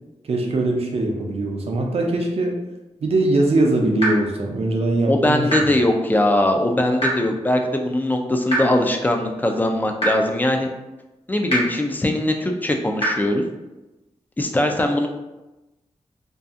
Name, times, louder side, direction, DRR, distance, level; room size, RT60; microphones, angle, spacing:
voice 1, 0.2-2.6 3.0-5.4, right 2 dB, 60° right, 1 dB, 0.5 m, -21 dB
sound 1, 4.0-4.1 5.5-5.6 7.0-7.1 8.5-8.6 10.0-10.1 11.5-11.6 13.0-13.1, right 1 dB, 55° left, 1.1 m, -21 dB
voice 2, 5.1-10.7 11.3-13.4 14.4-15.1, left 1 dB, 15° left, 3 dB, 0.3 m, -21 dB
2.6 x 2.3 x 2.4 m, 1.0 s
wide cardioid pair, 85°, 12 cm